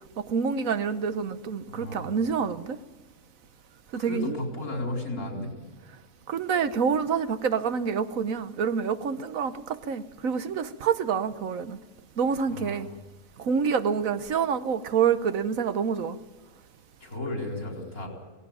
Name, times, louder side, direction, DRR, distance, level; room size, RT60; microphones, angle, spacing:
voice 1, 0.2-2.8 3.9-4.3 6.3-11.8 12.2-12.9 13.4-16.2, right 6 dB, 70° right, 12 dB, 1.3 m, -27 dB
voice 2, 1.7-2.1 3.9-5.5 12.5-13.0 17.0-18.1, left 2 dB, 75° left, 1 dB, 4.9 m, -34 dB
18.0 x 16.5 x 9.0 m, 1.1 s
omnidirectional pair, 1.5 m